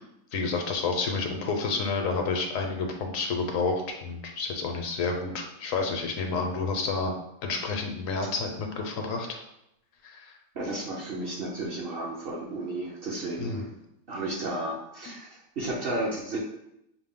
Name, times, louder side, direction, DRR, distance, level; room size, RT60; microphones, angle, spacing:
voice 1, 0.3-7.1 7.4-9.4 10.0-10.4 13.4-13.6, left 4 dB, 70° left, 3 dB, 1.0 m, -29 dB
voice 2, 10.5-13.7 14.1-16.4, right 2 dB, 50° right, -3 dB, 0.8 m, -33 dB
6.0 x 2.0 x 3.6 m, 0.83 s
omnidirectional pair, 1.5 m